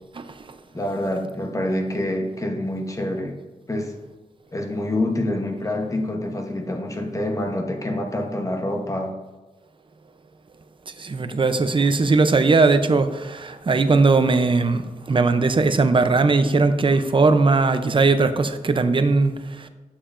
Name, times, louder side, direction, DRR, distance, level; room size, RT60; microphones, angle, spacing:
voice 1, 0.7-3.4 3.7-3.9 4.5-9.2, left 1 dB, 20° left, 3 dB, 0.9 m, -26 dB
voice 2, 11.0-19.7, right 3 dB, 35° right, 10 dB, 0.5 m, -19 dB
11.0 x 7.4 x 2.5 m, 1.2 s
wide cardioid pair, 135°, 14 cm